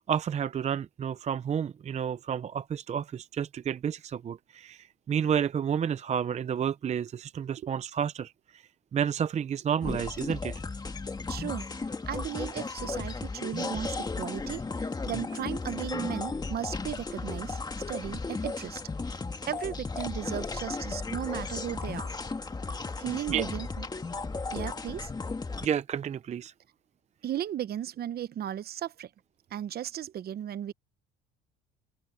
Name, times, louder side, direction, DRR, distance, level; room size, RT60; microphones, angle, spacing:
voice 1, 0.1-8.3 8.9-10.5 23.3-23.4 25.6-26.5, right 8 dB, 30° right, 0.6 m, -30 dB
sound 1, 9.8-25.7, left 3 dB, 20° left, 1.9 m, -35 dB
voice 2, 11.3-17.6 17.9-18.8 19.5-22.1 23.0-23.9 24.5-25.1 27.2-29.1 29.5-30.7, right 11 dB, 50° right, 0.9 m, -36 dB
cardioid pair, 100°, 21 cm